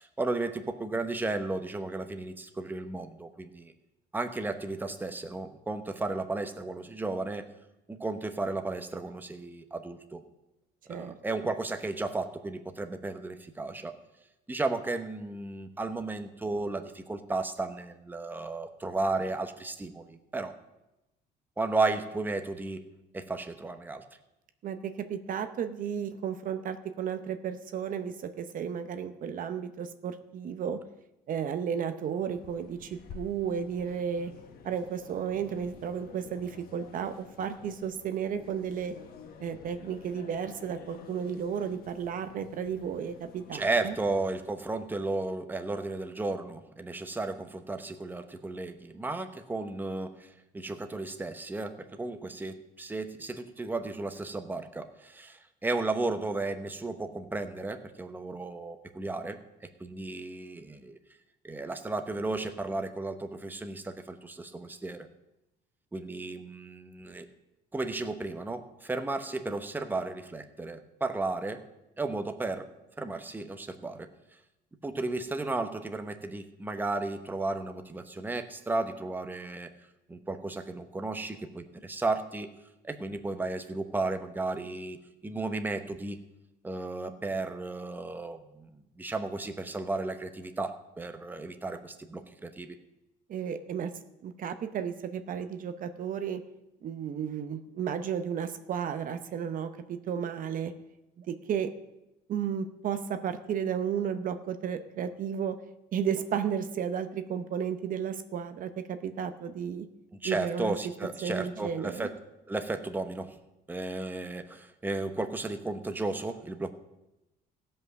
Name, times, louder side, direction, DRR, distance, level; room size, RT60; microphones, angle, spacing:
voice 1, 0.0-3.7 4.1-7.5 7.9-10.2 10.9-14.0 14.5-20.5 21.6-22.8 23.1-24.0 43.5-61.0 61.4-65.1 65.9-67.3 67.7-71.6 72.0-72.7 73.0-74.1 74.8-79.7 80.1-82.5 82.8-86.2 86.6-92.8 110.2-112.2 112.5-113.4 113.7-116.7, right 2 dB, 10° right, 7 dB, 0.9 m, -34 dB
voice 2, 24.6-30.8 31.3-34.3 34.6-39.0 39.4-43.9 93.3-93.9 94.2-96.4 96.8-100.7 101.2-101.7 102.3-105.6 105.9-109.9 110.2-110.7 111.2-112.1, right 8 dB, 55° right, 9 dB, 0.7 m, -33 dB
sound 1, 32.3-44.5, left 6 dB, 60° left, 1.3 m, -50 dB
16.0 x 5.6 x 6.4 m, 0.93 s
cardioid pair, 110°, 17 cm